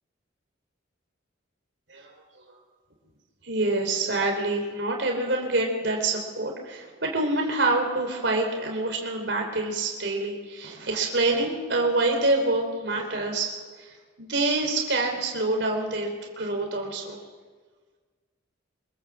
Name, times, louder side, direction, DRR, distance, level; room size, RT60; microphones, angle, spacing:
voice 1, 1.9-2.2 2.5-2.6 3.4-13.5 13.8-17.2, right 2 dB, 65° right, 1 dB, 3.8 m, -26 dB
25.0 x 17.5 x 7.5 m, 1.5 s
head